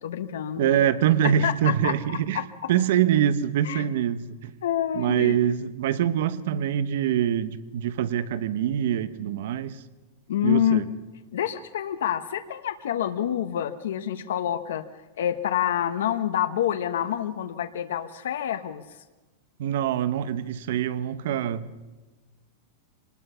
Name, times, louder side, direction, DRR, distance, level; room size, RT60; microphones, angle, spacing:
voice 1, 0.0-0.8 1.4-2.4 3.6-3.8 4.6-5.4 10.3-10.8 11.3-14.8 15.2-18.8, left 10 dB, 85° left, 1.1 m, -27 dB
voice 2, 0.6-2.4 2.7-4.5 4.9-9.8 10.4-10.8 19.6-21.8, right 10 dB, 60° right, 1.0 m, -24 dB
25.0 x 19.5 x 5.7 m
supercardioid pair, 170°, 0 cm